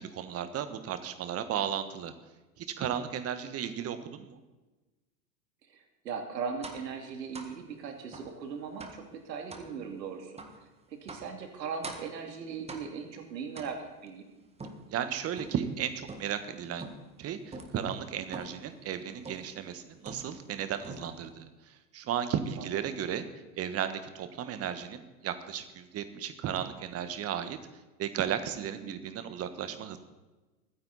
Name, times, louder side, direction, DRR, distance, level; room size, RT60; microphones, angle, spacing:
voice 1, 0.0-2.1 2.6-4.4 14.9-16.8 17.2-23.2 23.6-27.6 28.0-30.0, right 9 dB, 30° right, 10 dB, 1.4 m, -35 dB
voice 2, 5.7-14.2 22.6-23.0 28.8-29.1, right 6 dB, 80° right, 4 dB, 2.8 m, -39 dB
sound 1, 6.6-6.9 7.3-7.6 8.1-8.3 8.8-9.1 9.5-9.7 10.4-10.6 11.1-11.4 11.8-12.2 12.7-13.1 13.5-14.1 14.6-15.7 16.1-16.5 16.8-17.2 17.5-17.8 18.3-18.7 19.2-19.6 20.0-20.5 20.8-21.3, right 3 dB, 10° right, 1.6 m, -45 dB
23.0 x 10.0 x 4.2 m, 1.2 s
hypercardioid pair, 110°, 49 cm